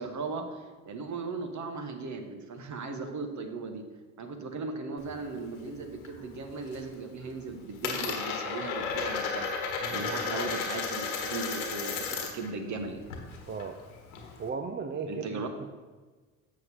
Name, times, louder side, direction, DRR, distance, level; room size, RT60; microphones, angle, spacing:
voice 1, 0.0-3.9 4.2-13.0 15.1-15.5, right 4 dB, 45° right, 5 dB, 1.3 m, -37 dB
Coin (dropping), 5.0-6.1 6.4-6.9 7.2-12.5 12.8-14.5, left 5 dB, 85° left, 1.4 m, -34 dB
voice 2, 9.8-10.2 13.5-13.8 14.4-15.7, right 5 dB, 25° right, 6 dB, 0.6 m, -36 dB
7.3 x 6.3 x 4.3 m, 1.3 s
hypercardioid pair, 65°, 42 cm